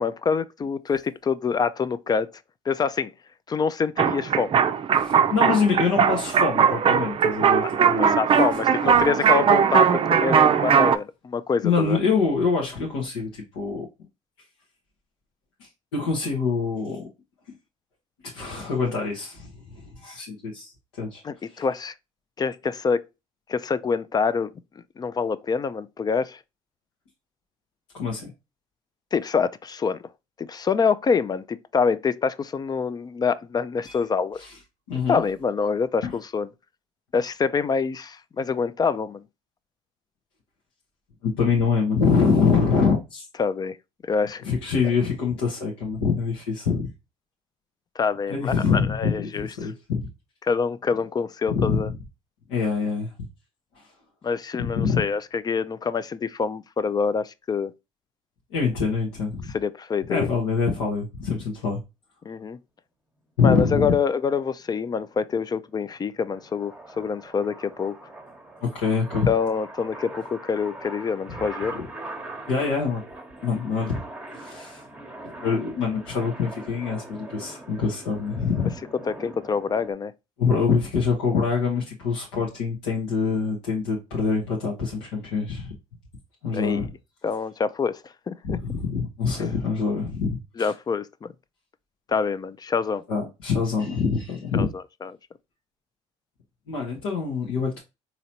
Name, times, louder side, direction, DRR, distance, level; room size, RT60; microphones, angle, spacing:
voice 1, 0.0-2.3 2.7-3.1 3.5-4.6 7.6-12.0 21.2-21.9 22.4-23.0 23.5-24.5 25.0-26.4 29.1-30.0 30.4-34.4 35.1-36.5 37.1-39.2 43.4-43.8 44.0-44.4 48.0-49.7 50.4-51.9 54.2-57.7 59.5-60.3 62.3-62.6 63.4-68.0 69.3-71.8 79.1-80.1 86.5-86.9 87.2-88.0 88.3-88.6 90.6-91.3 92.1-93.0 94.5-94.7 95.0-95.1, left 5 dB, 30° left, 0.4 m, -26 dB
sound 1, 4.0-11.0, right 7 dB, 40° right, 0.5 m, -20 dB
voice 2, 4.9-8.2 8.9-9.3 11.6-13.9 15.9-17.1 18.3-20.7 21.0-21.2 21.5-21.6 27.9-28.3 33.8-33.9 34.4-34.5 34.9-35.2 36.0-36.1 41.2-43.3 44.4-46.8 48.3-50.1 51.5-51.8 52.5-53.1 54.6-55.0 58.5-59.5 60.1-61.8 63.4-63.9 68.6-69.3 71.3-71.4 71.7-71.8 72.5-73.0 73.4-74.0 74.3-74.8 75.4-78.7 80.4-85.7 86.4-86.9 88.4-90.7 93.1-94.7 96.7-97.8, left 5 dB, 85° left, 1.0 m, -25 dB
sound 2, 64.6-79.9, right 1 dB, 10° right, 0.9 m, -42 dB
4.0 x 2.9 x 2.8 m
hypercardioid pair, 65°, 14 cm